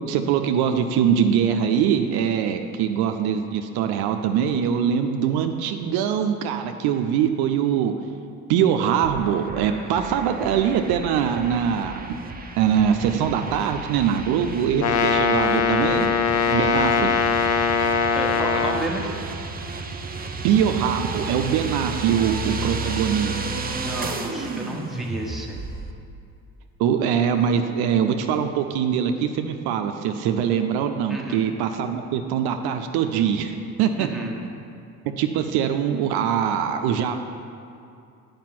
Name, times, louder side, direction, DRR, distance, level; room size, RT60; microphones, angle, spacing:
voice 1, 0.1-7.9 8.5-12.2 12.6-16.1 16.5-17.1 20.4-23.4 26.8-34.1 35.2-37.2, right 8 dB, 70° right, 6 dB, 0.6 m, -23 dB
sound 1, 9.0-25.9, right 3 dB, 20° right, 0.7 m, -33 dB
Brass instrument, 14.8-18.9, left 5 dB, 45° left, 0.6 m, -21 dB
voice 2, 18.0-19.1 23.5-25.6 31.1-31.4 34.0-34.3, right 1 dB, ahead, -2 dB, 1.3 m, -32 dB
7.4 x 5.2 x 5.8 m, 2.5 s
hypercardioid pair, 65°, 40 cm